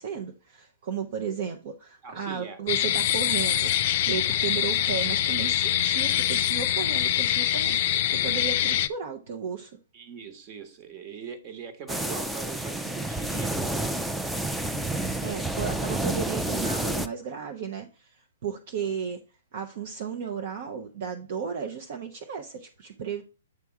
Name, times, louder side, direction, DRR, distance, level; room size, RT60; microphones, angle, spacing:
voice 1, 0.0-9.8 15.2-19.2 19.5-23.2, right 6 dB, 55° right, 0.8 m, -34 dB
voice 2, 2.0-2.6 9.9-13.9 14.5-14.9 18.8-18.9, right 6 dB, 35° right, 1.3 m, -41 dB
sound 1, 2.7-8.9, left 12 dB, 45° left, 0.5 m, -24 dB
sound 2, 11.9-17.1, right 1 dB, 5° right, 0.5 m, -29 dB
8.3 x 3.5 x 4.4 m
hypercardioid pair, 125°, 0 cm